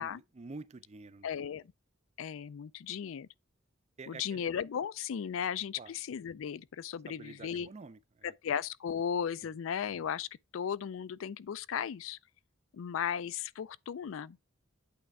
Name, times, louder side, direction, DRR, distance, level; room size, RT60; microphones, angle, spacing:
voice 1, 0.0-1.3 4.0-4.5 5.7-5.9 7.1-8.3 9.4-9.5, right 3 dB, 35° right, 0.4 m, -49 dB
voice 2, 1.2-1.6 2.2-3.3 4.1-7.7 8.2-10.3 10.5-12.2 12.7-14.4, left 8 dB, 75° left, 0.4 m, -36 dB
8.6 x 3.3 x 4.7 m
head